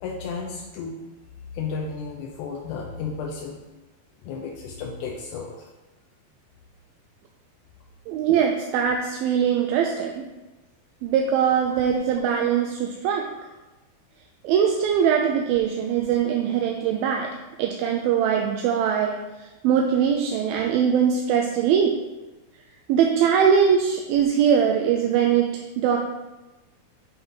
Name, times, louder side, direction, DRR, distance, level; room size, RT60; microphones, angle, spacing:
voice 1, 0.0-1.0 1.5-3.6 4.2-5.6, left 5 dB, 85° left, 0 dB, 1.7 m, -33 dB
voice 2, 8.1-10.2 11.0-13.3 14.4-17.3 17.6-19.2 19.6-22.0 22.9-26.0, right 8 dB, 85° right, 2 dB, 2.4 m, -21 dB
7.0 x 3.5 x 5.5 m, 1.1 s
omnidirectional pair, 4.3 m